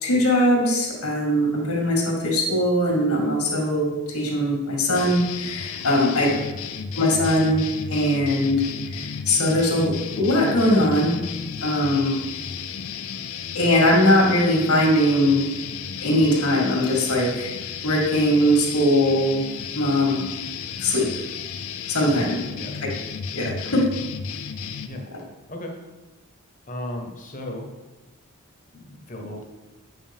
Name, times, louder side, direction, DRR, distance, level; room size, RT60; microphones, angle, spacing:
voice 1, 0.0-6.3 6.9-7.6 7.9-8.6 8.9-11.2 11.6-12.2 13.5-15.4 16.0-17.5 17.8-19.4 19.8-20.3 20.8-21.1 21.9-22.3 23.3-23.8, left 1 dB, 85° left, -2 dB, 2.0 m, -20 dB
sound 1, 4.9-24.9, left 6 dB, 70° left, 0.4 m, -33 dB
voice 2, 26.7-27.6 28.7-29.4, left 1 dB, 35° left, 2 dB, 1.0 m, -35 dB
7.8 x 5.5 x 3.6 m, 1.1 s
head